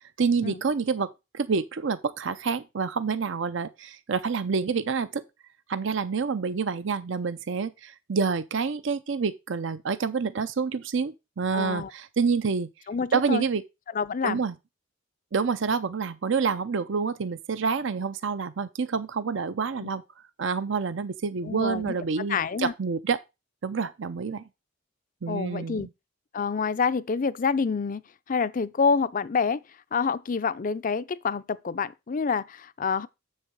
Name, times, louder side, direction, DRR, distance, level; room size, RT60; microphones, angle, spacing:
voice 1, 0.2-1.1 1.3-5.2 5.7-12.7 13.1-13.6 14.2-14.5 15.3-20.0 20.4-23.2 23.6-24.5 25.2-25.9, right 5 dB, 65° right, 0.6 m, -28 dB
voice 2, 11.5-11.9 12.9-13.4 13.9-14.4 19.8-19.9 21.4-22.0 22.3-22.7 25.3-25.9 26.3-28.0 28.3-29.6 29.9-33.1, left 5 dB, 40° left, 0.5 m, -27 dB
7.4 x 6.6 x 4.6 m
head